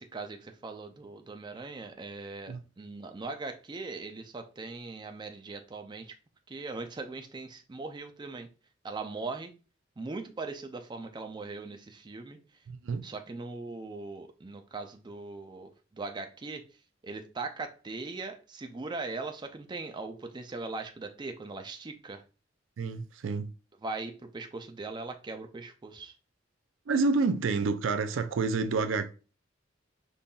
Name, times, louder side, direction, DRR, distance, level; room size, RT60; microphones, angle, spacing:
voice 1, 0.0-6.2 6.5-8.5 8.8-9.5 10.0-12.4 13.0-16.7 17.0-22.2 23.8-26.1, right 3 dB, 25° right, 0.4 m, -40 dB
voice 2, 12.7-13.1 22.8-23.5 26.9-29.1, right 4 dB, 85° right, 0.4 m, -28 dB
5.4 x 2.6 x 2.2 m
head